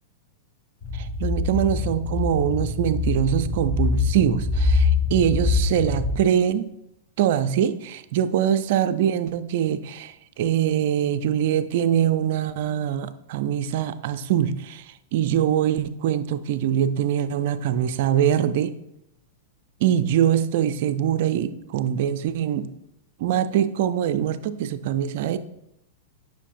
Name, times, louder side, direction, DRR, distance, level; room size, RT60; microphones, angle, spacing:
sound 1, 0.8-6.2, left 4 dB, 30° left, 2.4 m, -24 dB
voice 1, 0.9-6.7 7.2-14.9 15.1-18.7 19.8-22.7 23.2-25.4, right 10 dB, 60° right, 11 dB, 0.4 m, -23 dB
9.7 x 5.8 x 2.5 m, 0.85 s
hypercardioid pair, 105°, 0 cm